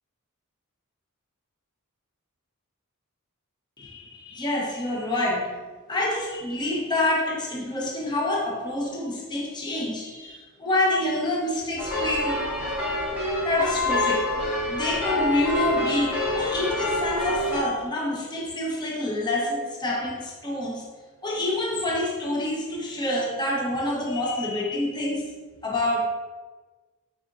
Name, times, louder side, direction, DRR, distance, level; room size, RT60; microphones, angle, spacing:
voice 1, 3.8-5.5 5.9-12.4 13.4-14.3 14.7-20.8 21.2-25.3 25.6-26.0, left 1 dB, 20° left, -3 dB, 0.6 m, -27 dB
sound 1, 11.8-17.6, left 1 dB, 5° right, 0.9 m, -26 dB
4.8 x 3.7 x 2.4 m, 1.3 s
head